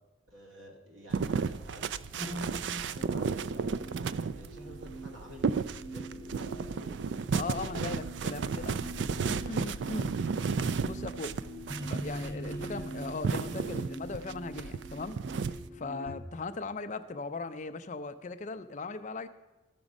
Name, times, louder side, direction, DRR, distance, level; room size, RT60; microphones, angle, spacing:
voice 1, 0.3-3.9 4.3-7.9, equal, 90° right, 0 dB, 2.4 m, -51 dB
sound 1, 1.1-15.7, right 5 dB, 65° right, 0.3 m, -33 dB
sound 2, 2.2-16.1, right 1 dB, 15° right, 0.9 m, -44 dB
voice 2, 7.3-8.8 9.3-10.1 10.8-11.3 11.9-15.2 15.5-19.3, left 3 dB, 40° left, 11 dB, 0.5 m, -38 dB
14.5 x 6.0 x 5.3 m, 1.1 s
head